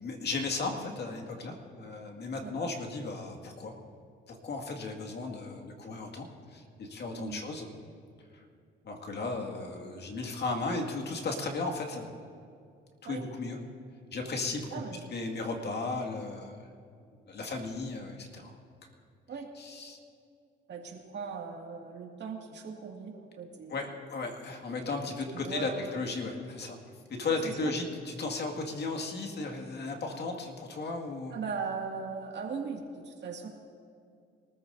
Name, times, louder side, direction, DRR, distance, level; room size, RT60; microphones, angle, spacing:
voice 1, 0.0-3.7 4.3-7.7 8.3-8.4 8.8-12.1 13.0-13.6 14.1-14.8 15.1-16.7 17.3-18.6 19.6-20.0 23.7-26.8 27.1-31.4, left 3 dB, 60° left, 2 dB, 2.1 m, -35 dB
voice 2, 14.7-15.1 19.3-19.5 20.7-23.7 25.1-25.9 27.4-27.7 31.3-33.5, right 5 dB, 60° right, 1 dB, 2.2 m, -39 dB
23.5 x 14.5 x 2.7 m, 2.3 s
cardioid pair, 90°, 20 cm